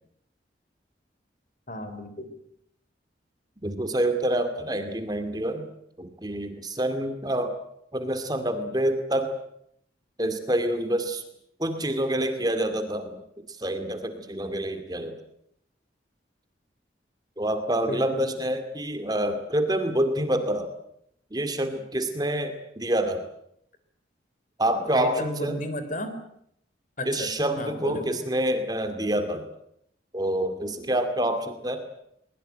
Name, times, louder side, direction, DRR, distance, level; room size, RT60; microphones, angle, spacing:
voice 1, 1.7-2.3 17.9-18.3 25.0-26.1 27.0-27.3 27.6-28.2, left 1 dB, 45° left, 10 dB, 3.8 m, -33 dB
voice 2, 3.6-5.7 6.0-7.5 7.9-9.3 10.2-11.2 11.6-13.2 13.5-15.2 17.4-20.7 21.3-23.3 24.6-25.6 27.1-29.5 30.1-31.9, right 1 dB, 20° right, 9 dB, 2.3 m, -27 dB
23.0 x 21.0 x 9.1 m, 0.73 s
head